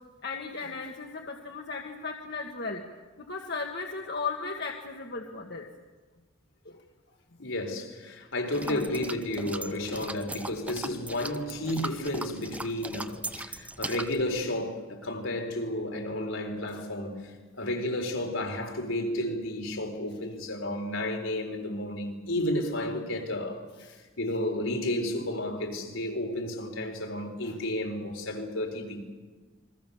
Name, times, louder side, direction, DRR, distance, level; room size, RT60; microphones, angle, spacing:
voice 1, 0.2-2.8 3.2-5.7 6.6-6.8 8.6-8.9 16.7-16.8 21.7-21.8 27.4-27.6, left 4 dB, 50° left, 1.7 m, -36 dB
voice 2, 7.4-23.7 24.2-29.1, left 1 dB, 75° left, 4.1 m, -32 dB
sound 1, 8.5-14.2, right 2 dB, 5° right, 0.7 m, -39 dB
29.0 x 22.5 x 7.1 m
head